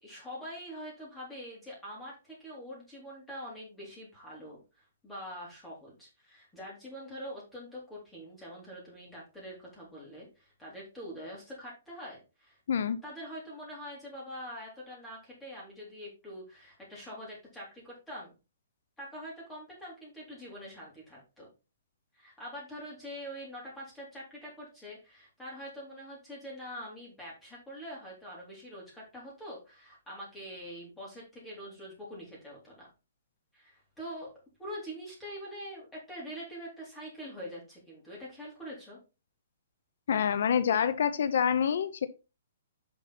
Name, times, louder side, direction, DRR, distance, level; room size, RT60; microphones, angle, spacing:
voice 1, 0.0-12.6 13.0-18.3 19.0-21.5 22.1-32.9 33.5-34.3 34.6-39.0, equal, 5° left, -5 dB, 3.8 m, -44 dB
voice 2, 12.7-13.0 40.1-42.1, left 8 dB, 65° left, 13 dB, 0.8 m, -27 dB
7.0 x 5.4 x 4.2 m, 0.29 s
hypercardioid pair, 165°, 0 cm